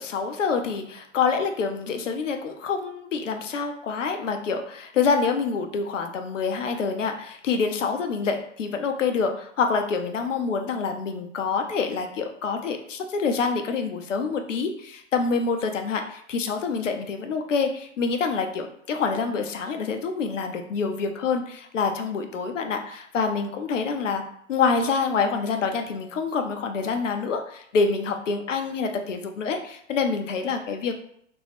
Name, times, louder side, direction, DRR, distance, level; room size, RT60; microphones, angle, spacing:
voice 1, 0.0-24.2 24.5-31.0, left 5 dB, 90° left, 5 dB, 0.5 m, -26 dB
2.5 x 2.2 x 3.3 m, 0.68 s
hypercardioid pair, 90°, 36 cm